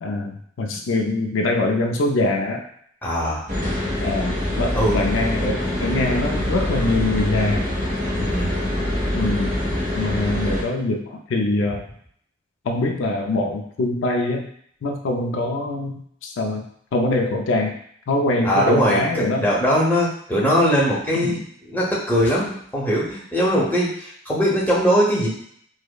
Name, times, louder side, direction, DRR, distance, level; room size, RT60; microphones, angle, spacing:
voice 1, 0.0-2.6 4.0-7.7 9.1-9.6 10.0-11.8 12.6-14.5 14.8-16.6 16.9-17.8 18.1-19.5 21.1-21.4, left 2 dB, 75° left, 3 dB, 0.4 m, -23 dB
voice 2, 3.0-3.4 4.8-5.1 8.2-8.6 18.4-21.4 21.7-25.3, equal, 10° left, -5 dB, 0.7 m, -20 dB
sound 1, 3.5-10.6, left 1 dB, 40° right, 1.1 m, -24 dB
4.7 x 2.1 x 2.3 m, 0.65 s
head